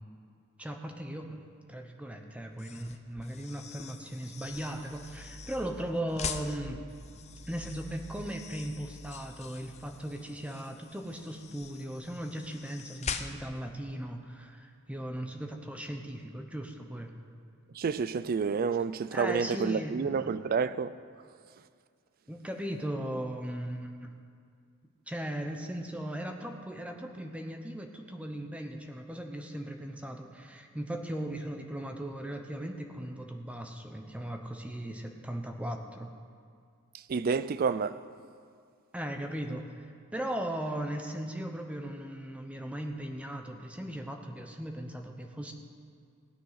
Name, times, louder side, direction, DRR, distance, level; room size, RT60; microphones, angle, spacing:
voice 1, 0.6-1.4 1.7-6.8 7.5-17.1 19.1-20.4 22.3-24.1 25.1-36.1 38.9-45.5, right 1 dB, 5° right, 0.9 m, -38 dB
sound 1, 2.5-13.7, left 6 dB, 30° left, 0.6 m, -44 dB
sound 2, 4.5-10.4, equal, 65° right, 1.9 m, -49 dB
voice 2, 17.8-20.9 37.1-38.0, right 5 dB, 45° right, 0.4 m, -29 dB
16.0 x 9.2 x 5.7 m
head